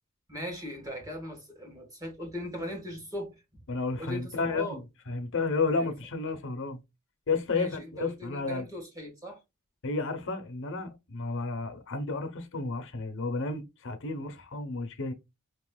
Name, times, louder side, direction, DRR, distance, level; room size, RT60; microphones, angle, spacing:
voice 1, 0.3-3.6 4.0-4.8 5.8-5.9 7.5-9.4, left 1 dB, 15° right, 1.6 m, -39 dB
voice 2, 3.7-4.8 5.1-6.8 7.3-8.6 9.8-15.1, left 3 dB, 60° left, 0.9 m, -32 dB
5.6 x 3.1 x 2.2 m
head